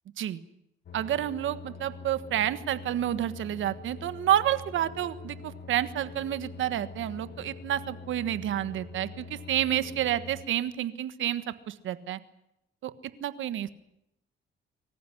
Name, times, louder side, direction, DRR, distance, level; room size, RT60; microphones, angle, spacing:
sound 1, 0.9-10.4, left 4 dB, 55° left, 1.7 m, -44 dB
voice 1, 0.9-12.2 12.8-12.9 13.2-13.7, right 11 dB, 75° right, 13 dB, 1.5 m, -29 dB
25.0 x 15.0 x 9.9 m, 0.83 s
cardioid pair, 90°, 20 cm